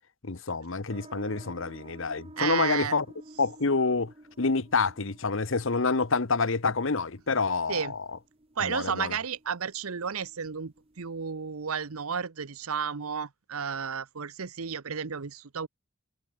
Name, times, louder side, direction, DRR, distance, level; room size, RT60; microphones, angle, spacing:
voice 1, 0.2-3.1 3.4-4.1 4.4-8.1 8.6-9.2, left 4 dB, 65° left, 1.1 m, -27 dB
sound 1, 0.9-12.0, right 1 dB, 30° right, 1.5 m, -53 dB
voice 2, 2.4-2.9 7.7-7.9 8.6-15.7, right 6 dB, 90° right, 0.9 m, -32 dB
head